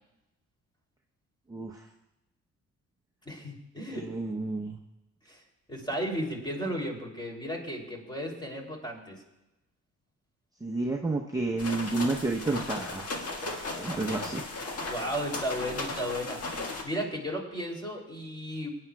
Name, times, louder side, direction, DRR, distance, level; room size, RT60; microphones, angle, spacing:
voice 1, 1.5-1.9 3.9-4.8 10.6-13.1 13.8-14.4, right 3 dB, 10° right, -1 dB, 0.8 m, -30 dB
voice 2, 3.2-4.0 5.3-5.4 5.7-9.2 14.8-18.7, equal, 15° left, 0 dB, 2.9 m, -34 dB
sound 1, 11.6-16.8, left 2 dB, 55° left, 1.7 m, -36 dB
22.0 x 9.7 x 2.3 m, 0.95 s
cardioid pair, 90°, 30 cm